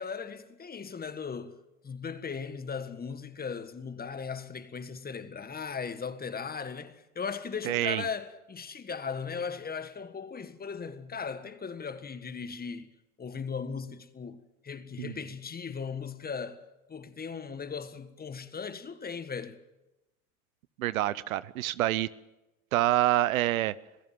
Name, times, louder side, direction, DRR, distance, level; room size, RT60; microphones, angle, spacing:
voice 1, 0.0-1.6 1.8-12.9 13.2-19.6, left 5 dB, 20° left, 1.7 m, -38 dB
voice 2, 7.6-8.0 15.0-15.1 20.8-22.1 22.7-23.7, right 15 dB, 70° right, 0.8 m, -27 dB
26.5 x 17.0 x 7.5 m
hypercardioid pair, 80°, 43 cm